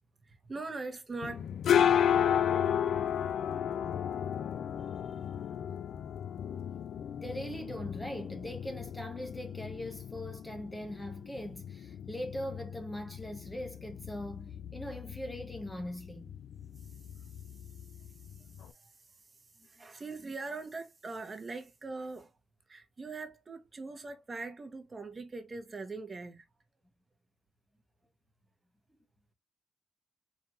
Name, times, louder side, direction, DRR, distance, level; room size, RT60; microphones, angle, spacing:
voice 1, 0.2-1.5 4.8-4.9 16.8-17.3 17.7-19.3 19.6-22.3 22.7-26.5, right 3 dB, 30° right, 1.1 m, -42 dB
sound 1, 1.2-18.7, left 9 dB, 65° left, 0.3 m, -33 dB
voice 2, 7.2-16.3 19.8-19.9, equal, 10° left, 0.8 m, -41 dB
4.3 x 3.5 x 2.5 m
cardioid pair, 90°, 0 cm